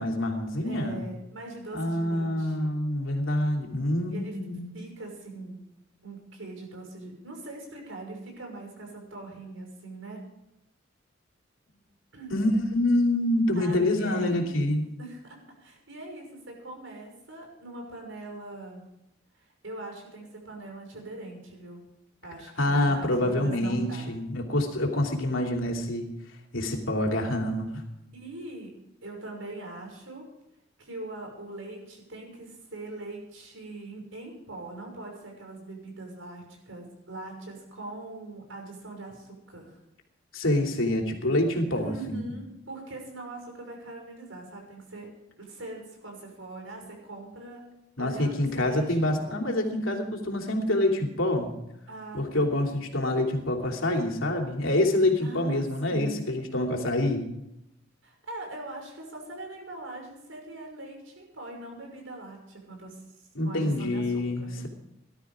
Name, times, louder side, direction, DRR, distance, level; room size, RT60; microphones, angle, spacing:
voice 1, 0.0-1.0 1.7-4.8 12.3-14.8 22.6-26.1 26.5-27.8 40.3-42.3 48.0-51.5 52.1-57.2 63.3-64.7, left 1 dB, 85° left, 1 dB, 3.1 m, -26 dB
voice 2, 0.6-2.7 4.1-4.4 4.7-5.6 6.0-10.2 12.1-12.3 13.6-15.2 15.6-18.9 19.3-21.8 22.2-24.1 28.1-30.3 30.8-39.8 41.8-45.1 45.4-47.7 48.0-49.4 51.9-52.5 55.2-56.2 58.0-64.7, right 2 dB, 80° right, 2 dB, 6.0 m, -42 dB
18.5 x 12.5 x 5.0 m, 0.86 s
head